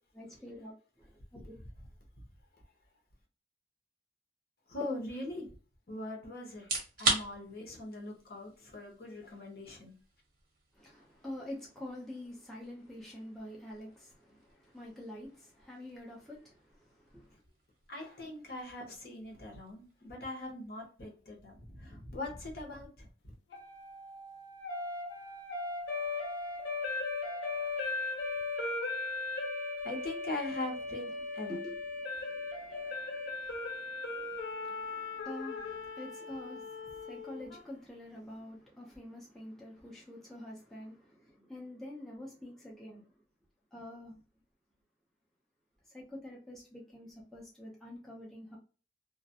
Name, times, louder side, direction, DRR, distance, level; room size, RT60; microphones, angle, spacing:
voice 1, 0.1-0.7 1.0-1.2 1.4-1.5 10.7-17.4 31.5-43.1 43.7-44.1 45.9-48.6, left 1 dB, ahead, 0.5 m, -47 dB
voice 2, 4.7-5.5 5.9-6.7 7.0-9.9 17.9-23.1 29.8-31.6, left 2 dB, 55° left, 0.9 m, -41 dB
sound 1, 6.5-21.4, right 3 dB, 50° right, 0.9 m, -42 dB
sound 2, 23.5-37.6, left 3 dB, 85° left, 0.5 m, -38 dB
2.4 x 2.1 x 2.7 m
head